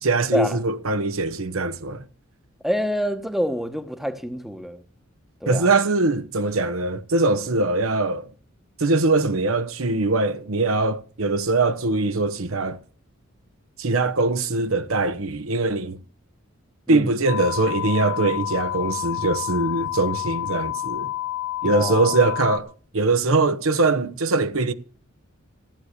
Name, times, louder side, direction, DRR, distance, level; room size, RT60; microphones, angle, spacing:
voice 1, 0.0-2.0 5.5-8.3 8.8-12.8 13.8-16.0 16.9-21.1 21.6-24.7, right 3 dB, 70° right, 1.0 m, -22 dB
voice 2, 2.6-4.8 5.4-5.7 16.9-17.1 21.6-22.1, equal, ahead, 1.0 m, -26 dB
sound 1, 17.3-22.6, left 15 dB, 80° left, 1.6 m, -29 dB
14.5 x 9.6 x 6.6 m
head